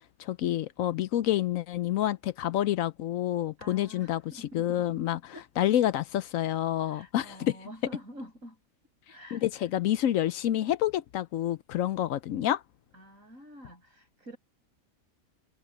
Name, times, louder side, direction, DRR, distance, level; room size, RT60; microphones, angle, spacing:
voice 1, 0.2-5.2 5.6-7.6 9.3-12.6, left 12 dB, 75° left, 1.0 m, -28 dB
voice 2, 3.6-5.7 6.8-8.6 9.1-9.7 12.9-14.4, equal, 65° right, 6.8 m, -48 dB
omnidirectional pair, 1.5 m